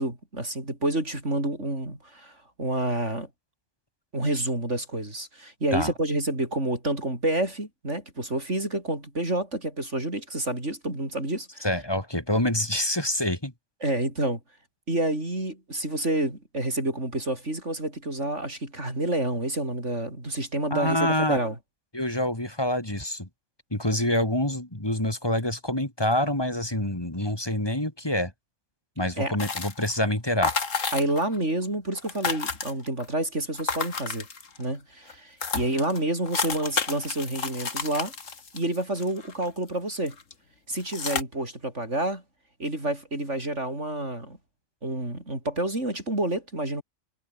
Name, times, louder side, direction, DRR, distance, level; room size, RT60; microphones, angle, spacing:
voice 1, 0.0-3.3 4.1-11.7 13.8-14.4 14.9-21.6 29.2-29.4 30.9-34.3 34.6-38.1 38.5-40.2 40.7-42.2 42.6-44.4 44.8-46.8, right 1 dB, 65° right, 7.8 m, -29 dB
voice 2, 11.6-13.5 20.7-21.4 21.9-23.3 23.7-28.3 29.0-30.5, left 1 dB, 20° left, 3.3 m, -26 dB
sound 1, 29.4-30.0 30.4-31.4 31.6-31.7 31.9-33.0 33.6-34.6 35.1-35.2 35.4-39.7 40.1-40.3 40.8-41.2, left 5 dB, 75° left, 2.4 m, -31 dB
omnidirectional pair, 1.3 m